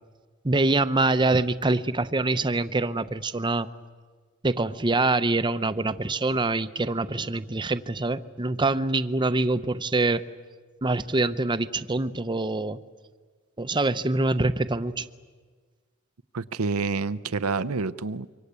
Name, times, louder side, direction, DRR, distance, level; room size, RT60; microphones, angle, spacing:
voice 1, 0.4-3.7 4.4-10.2 10.8-12.8 13.6-15.1, right 2 dB, 20° right, 11 dB, 0.7 m, -25 dB
voice 2, 16.3-18.4, right 4 dB, 85° right, 14 dB, 0.7 m, -28 dB
26.5 x 24.0 x 8.3 m, 1.5 s
head